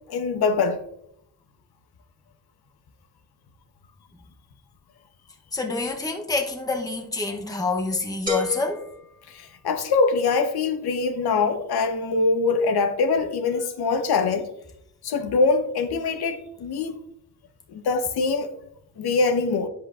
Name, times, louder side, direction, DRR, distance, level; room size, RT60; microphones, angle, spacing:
voice 1, 0.1-0.8 9.3-14.5 15.0-17.0 17.7-18.5 19.0-19.7, left 4 dB, 80° left, 1.0 m, -23 dB
voice 2, 5.5-8.8, left 3 dB, 10° left, 0.8 m, -27 dB
sound 1, 8.3-10.1, left 5 dB, 20° right, 2.1 m, -31 dB
10.5 x 7.6 x 2.5 m
wide cardioid pair, 170°, 38 cm